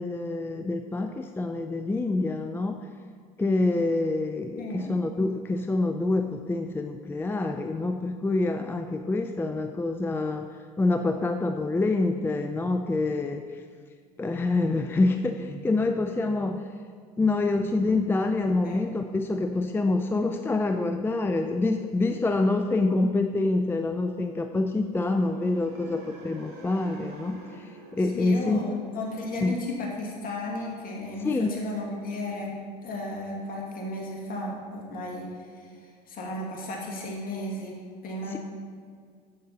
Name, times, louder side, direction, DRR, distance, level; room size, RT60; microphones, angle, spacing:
voice 1, 0.0-2.8 3.4-10.5 10.8-13.6 14.2-16.7 17.2-28.6 29.4-29.5 31.2-31.5 38.3-38.4, left 2 dB, 10° left, 6 dB, 0.4 m, -26 dB
voice 2, 4.6-5.0 18.6-18.9 28.1-38.4, left 1 dB, 45° left, -2 dB, 2.2 m, -34 dB
sound 1, 25.2-29.3, right 3 dB, 55° right, 1.9 m, -47 dB
8.2 x 6.7 x 4.1 m, 2.1 s
hypercardioid pair, 75°, 20 cm